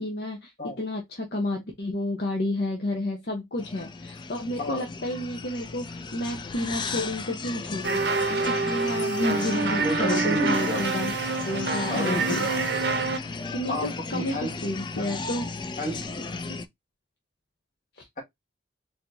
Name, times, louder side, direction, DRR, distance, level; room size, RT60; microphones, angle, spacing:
voice 1, 0.0-0.5 0.8-8.0 8.3-11.1 11.5-12.5 13.5-15.5 16.5-16.6 18.0-18.1, left 1 dB, 60° left, 0.9 m, -31 dB
sound 1, 3.6-16.6, left 4 dB, 25° left, 0.4 m, -36 dB
sound 2, 7.8-13.2, right 4 dB, 70° right, 0.6 m, -27 dB
voice 2, 9.8-10.8 11.9-12.4 13.7-14.5 15.0-15.2 15.8-16.3, left 1 dB, 45° left, 1.6 m, -31 dB
4.3 x 2.8 x 2.6 m
head